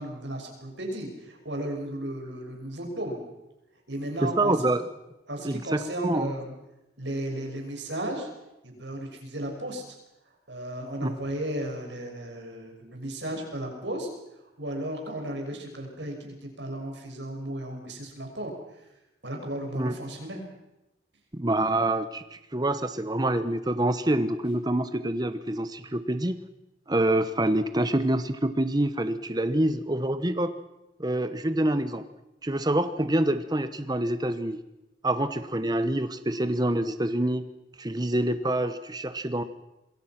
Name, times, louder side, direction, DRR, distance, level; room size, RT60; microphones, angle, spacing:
voice 1, 0.0-3.2 3.9-4.5 5.3-6.5 7.0-8.3 8.6-9.8 10.5-14.1 14.6-18.5 19.2-20.4, right 1 dB, 75° right, 3 dB, 6.4 m, -34 dB
voice 2, 4.2-4.8 5.4-6.3 11.0-11.1 19.7-19.9 21.3-26.4 26.9-30.5 31.0-32.0 32.4-34.6 35.0-37.4 37.8-39.4, right 1 dB, 20° right, 11 dB, 1.1 m, -26 dB
27.0 x 22.0 x 6.0 m, 0.96 s
head